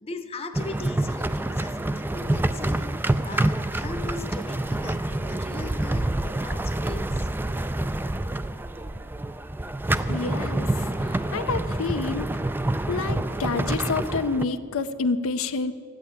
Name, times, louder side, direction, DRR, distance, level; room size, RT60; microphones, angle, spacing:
voice 1, 0.0-3.0 3.2-7.3, left 3 dB, 30° left, 7 dB, 0.8 m, -38 dB
sound 1, 0.5-14.4, right 1 dB, 10° right, 0.3 m, -27 dB
voice 2, 10.1-12.3 12.9-15.7, left 4 dB, 85° left, 9 dB, 0.6 m, -28 dB
13.5 x 8.9 x 9.3 m, 2.4 s
head